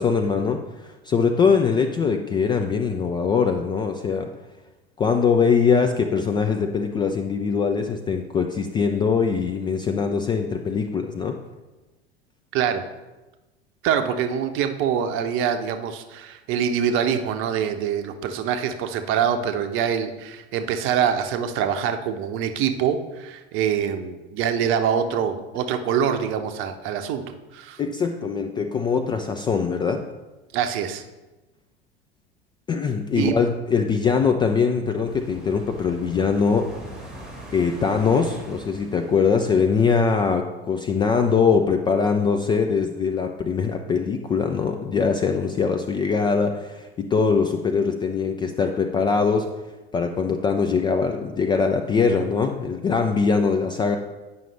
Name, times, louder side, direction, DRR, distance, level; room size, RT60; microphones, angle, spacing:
voice 1, 0.0-4.3 5.0-11.4 27.8-30.1 32.7-36.7 37.5-49.5 49.9-54.0, left 5 dB, 15° left, 5 dB, 0.3 m, -22 dB
voice 2, 12.5-12.8 13.8-27.8 30.5-31.0 33.1-33.4, right 8 dB, 40° right, 8 dB, 0.8 m, -25 dB
sound 1, 35.0-40.2, right 1 dB, ahead, 1.6 m, -42 dB
9.0 x 5.4 x 3.3 m, 1.1 s
figure-of-eight pair, 80°, 32 cm